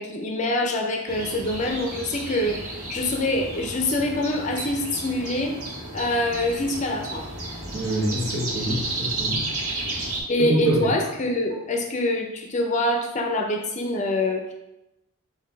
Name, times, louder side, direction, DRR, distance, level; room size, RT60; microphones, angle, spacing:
voice 1, 0.0-5.6 5.9-7.3 10.3-14.5, left 1 dB, 35° left, 2 dB, 0.5 m, -25 dB
sound 1, 1.1-10.2, right 2 dB, 85° right, 1.4 m, -33 dB
voice 2, 7.7-9.4 10.5-10.8, right 1 dB, 60° right, -5 dB, 1.3 m, -25 dB
4.0 x 2.7 x 4.5 m, 0.90 s
head